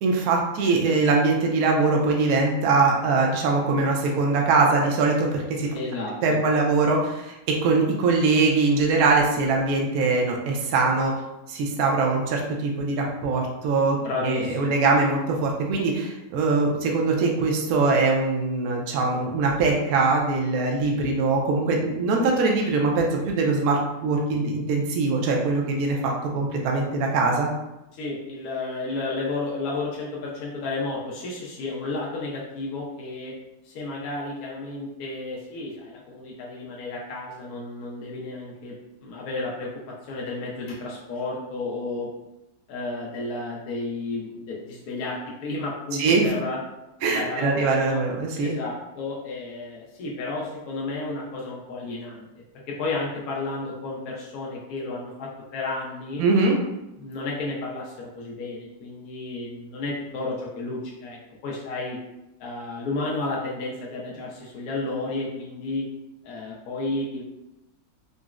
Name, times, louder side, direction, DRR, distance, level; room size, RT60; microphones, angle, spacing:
voice 1, 0.0-5.7 6.2-11.1 11.5-27.5 46.0-46.3 47.0-48.5 56.2-56.6, right 3 dB, 70° right, 0 dB, 0.9 m, -22 dB
voice 2, 5.7-6.4 14.0-14.8 28.0-33.3 33.7-38.7 39.0-39.7 40.1-42.1 42.7-46.6 47.0-48.0 48.4-52.3 52.7-56.2 57.0-61.2 61.4-62.0 62.4-65.9 66.2-67.2, left 2 dB, 65° left, -4 dB, 1.0 m, -32 dB
3.8 x 2.0 x 2.3 m, 0.93 s
omnidirectional pair, 2.0 m